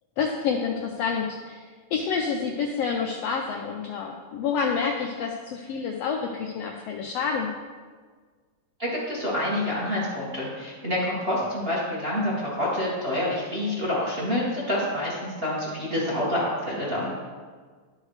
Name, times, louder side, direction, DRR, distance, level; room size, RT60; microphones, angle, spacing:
voice 1, 0.2-7.5, left 5 dB, 80° left, 2 dB, 1.4 m, -28 dB
voice 2, 8.8-17.1, left 1 dB, 25° right, -6 dB, 1.3 m, -27 dB
11.5 x 6.4 x 3.2 m, 1.5 s
omnidirectional pair, 3.4 m